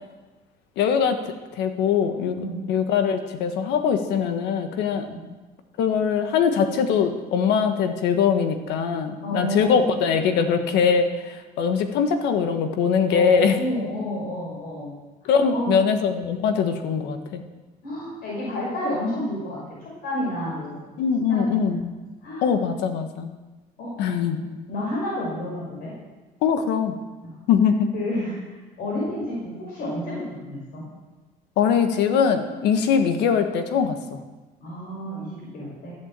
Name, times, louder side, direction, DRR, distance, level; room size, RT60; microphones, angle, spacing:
voice 1, 0.8-1.2 1.6-2.4 2.7-5.1 5.8-13.6 15.2-17.4 21.0-21.8 22.4-23.3 24.0-24.4 26.4-27.0 27.5-27.9 31.6-34.2, left 6 dB, 90° left, 7 dB, 1.4 m, -22 dB
voice 2, 9.2-9.8 13.1-14.9 15.2-15.8 17.8-20.9 21.3-21.8 22.2-22.4 23.8-23.9 24.3-25.9 27.9-30.8 34.6-36.0, left 1 dB, 65° left, -5 dB, 5.0 m, -30 dB
14.0 x 8.2 x 7.6 m, 1.2 s
cardioid pair, 110°, 17 cm